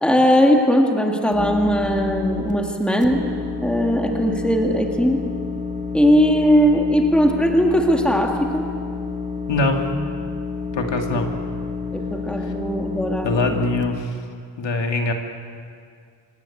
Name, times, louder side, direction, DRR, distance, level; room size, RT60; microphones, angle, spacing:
voice 1, 0.0-3.2 3.6-5.2 5.9-8.7 11.9-13.6, equal, ahead, 1 dB, 2.0 m, -19 dB
sound 1, 1.3-2.5 3.0-13.8, left 4 dB, 15° right, 0.9 m, -29 dB
voice 2, 9.5-9.8 10.7-11.3 13.2-14.2 14.6-15.1, left 2 dB, 70° left, 2 dB, 2.5 m, -22 dB
26.5 x 17.5 x 8.5 m, 2.2 s
wide cardioid pair, 180°, 46 cm